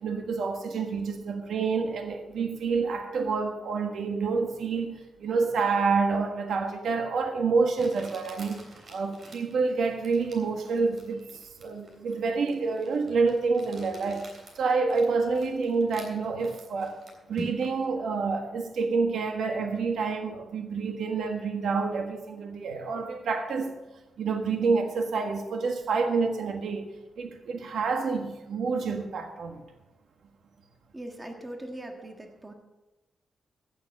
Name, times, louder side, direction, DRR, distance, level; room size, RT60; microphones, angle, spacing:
voice 1, 0.0-17.0 17.3-23.8 24.2-26.9 27.2-29.6, right 4 dB, 85° right, 1.5 m, -28 dB
Crumpling crinkling, 6.8-6.9 7.8-17.8, right 1 dB, 50° right, 3.4 m, -47 dB
voice 2, 30.9-32.5, right 1 dB, 15° right, 1.5 m, -40 dB
15.5 x 7.1 x 6.6 m
wide cardioid pair, 140°, 0 cm